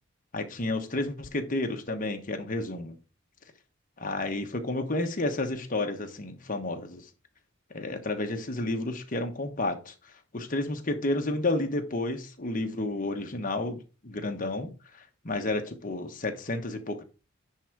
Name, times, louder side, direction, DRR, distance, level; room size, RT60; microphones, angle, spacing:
voice 1, 0.3-3.0 4.0-7.1 7.7-9.9 10.3-17.0, left 2 dB, 40° left, 1.2 m, -31 dB
10.0 x 3.8 x 4.6 m
head